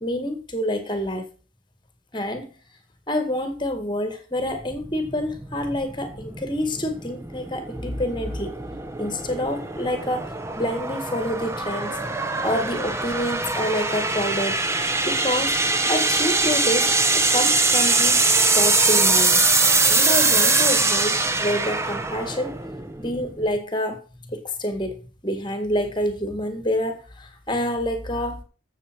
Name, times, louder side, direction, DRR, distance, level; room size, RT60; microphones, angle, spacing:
voice 1, 0.0-1.3 2.1-2.5 3.1-8.6 9.0-12.0 12.4-14.6 15.1-15.6 15.9-18.3 18.5-19.4 19.9-22.6 23.0-28.4, left 1 dB, 25° left, 8 dB, 1.8 m, -27 dB
sound 1, 4.5-23.6, right 3 dB, 15° right, 0.8 m, -22 dB
13.5 x 7.2 x 4.6 m, 0.36 s
head